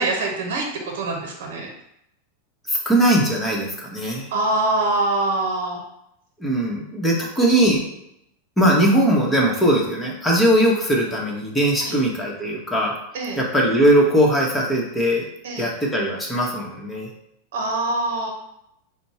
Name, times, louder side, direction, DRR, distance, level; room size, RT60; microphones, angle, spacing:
voice 1, 0.0-1.7 4.3-5.8 11.8-12.0 13.1-13.4 15.4-15.7 17.5-18.3, right 2 dB, 70° right, 1 dB, 0.8 m, -24 dB
voice 2, 2.7-4.3 6.4-7.9 8.6-12.9 13.4-15.2 15.6-17.1, right 1 dB, 10° left, -2 dB, 1.1 m, -20 dB
4.3 x 2.2 x 4.2 m, 0.78 s
hypercardioid pair, 120°, 0 cm